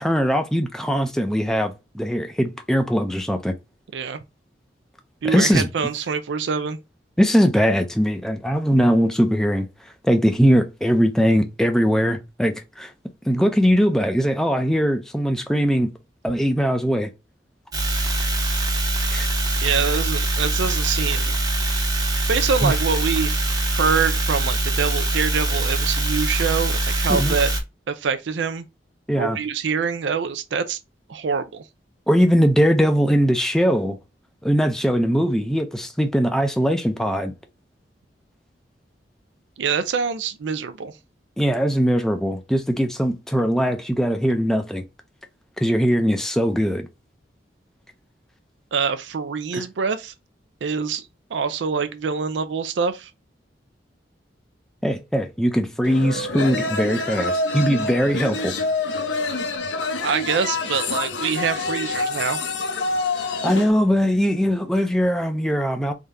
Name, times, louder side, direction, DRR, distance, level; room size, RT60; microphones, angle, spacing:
voice 1, 0.0-3.5 5.2-5.7 7.2-9.7 10.0-12.9 13.3-15.9 16.2-17.1 19.1-19.3 22.6-22.8 27.2-27.4 29.1-29.4 32.1-34.0 34.4-37.3 41.4-44.8 45.6-46.9 49.5-49.6 54.8-58.6 63.4-65.9, equal, 5° left, 0.4 m, -20 dB
voice 2, 3.9-4.2 5.2-6.8 19.6-21.4 22.3-27.5 27.9-28.7 29.2-30.8 31.1-31.6 39.6-40.9 48.7-50.1 50.6-53.1 60.0-62.4, right 5 dB, 90° right, 0.4 m, -25 dB
sound 1, 17.7-27.6, right 2 dB, 20° right, 0.7 m, -23 dB
sound 2, 55.8-63.7, left 3 dB, 90° left, 0.7 m, -26 dB
3.7 x 2.7 x 3.3 m
head